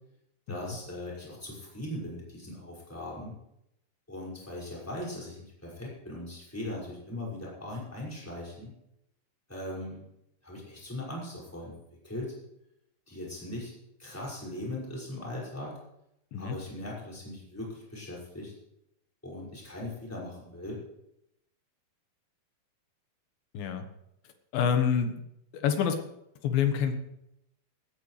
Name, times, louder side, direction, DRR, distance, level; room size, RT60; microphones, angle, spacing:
voice 1, 0.5-3.3 4.1-8.7 9.5-10.0 10.4-11.8 12.0-12.3 13.1-13.7 14.0-15.7 16.4-18.5 19.2-20.8, left 1 dB, 5° left, -6 dB, 5.5 m, -39 dB
voice 2, 23.5-23.9 24.5-25.1 25.5-26.0 26.4-26.9, left 7 dB, 80° left, 6 dB, 3.1 m, -26 dB
19.0 x 14.0 x 3.3 m, 0.81 s
omnidirectional pair, 4.2 m